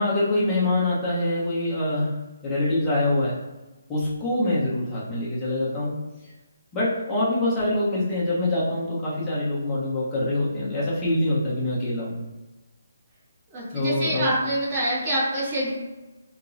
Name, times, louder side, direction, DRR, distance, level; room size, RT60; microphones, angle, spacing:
voice 1, 0.0-2.1 2.4-3.4 3.9-5.9 6.7-12.2 13.7-14.3, left 1 dB, 15° left, -9 dB, 1.1 m, -24 dB
voice 2, 13.5-15.7, right 1 dB, 30° right, -7 dB, 1.4 m, -26 dB
3.0 x 2.9 x 2.7 m, 1.1 s
figure-of-eight pair, 140°, 0 cm